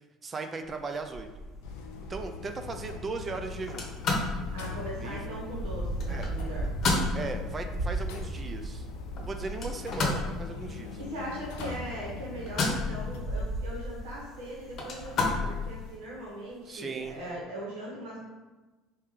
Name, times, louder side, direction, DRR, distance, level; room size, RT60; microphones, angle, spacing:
voice 1, 0.2-1.3 2.1-3.9 5.0-5.2 6.1-6.3 7.1-8.9 9.2-11.0 16.7-17.1, right 4 dB, 30° right, 6 dB, 0.3 m, -37 dB
sound 1, 0.6-10.9 11.4-12.0 12.3-15.7 16.5-16.6 17.0-17.3, right 1 dB, 55° right, 1.2 m, -37 dB
sound 2, 1.6-13.2, left 5 dB, 85° left, 0.4 m, -42 dB
sound 3, 3.6-16.0, left 3 dB, 50° left, 0.8 m, -34 dB
voice 2, 4.5-6.6 11.0-18.2, right 1 dB, 90° right, -4 dB, 1.3 m, -40 dB
3.3 x 2.8 x 3.5 m, 1.2 s
supercardioid pair, 100°, 0 cm